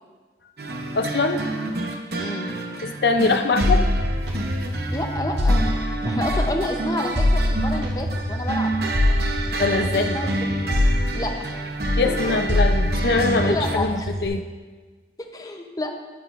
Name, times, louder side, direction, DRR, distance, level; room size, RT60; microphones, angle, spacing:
sound 1, 0.6-13.8, right 2 dB, 60° right, 0.9 m, -29 dB
voice 1, 0.9-1.4 2.8-3.8 9.5-10.2 11.0-11.2 12.0-14.4, left 3 dB, 65° left, 7 dB, 0.5 m, -23 dB
voice 2, 2.2-2.5 4.9-5.6 6.1-8.7 9.8-10.6 11.1-11.3 13.4-14.1 15.2-15.9, left 1 dB, 20° left, 3 dB, 0.7 m, -29 dB
sound 2, 3.6-6.7 7.2-11.6 11.8-14.3, left 1 dB, 75° right, 2.0 m, -24 dB
12.0 x 10.0 x 2.5 m, 1.4 s
head